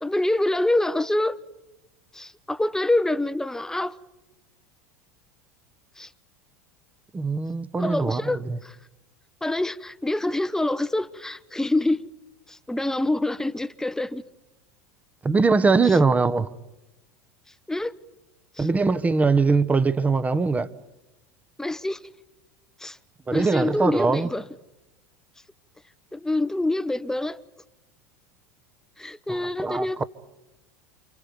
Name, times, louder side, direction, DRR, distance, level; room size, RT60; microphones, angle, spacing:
voice 1, 0.0-1.4 2.1-4.0 6.0-6.1 7.8-8.8 9.4-12.1 12.5-14.2 15.9-16.0 17.7-17.9 18.6-18.7 21.6-22.1 22.8-23.0 23.3-24.4 26.1-27.4 29.0-30.0, left 1 dB, 5° left, 1.0 m, -26 dB
voice 2, 7.1-8.6 15.2-16.5 18.6-20.7 23.3-24.3 29.3-30.0, right 4 dB, 15° right, 1.2 m, -22 dB
29.5 x 26.5 x 5.3 m
hypercardioid pair, 90°, 8 cm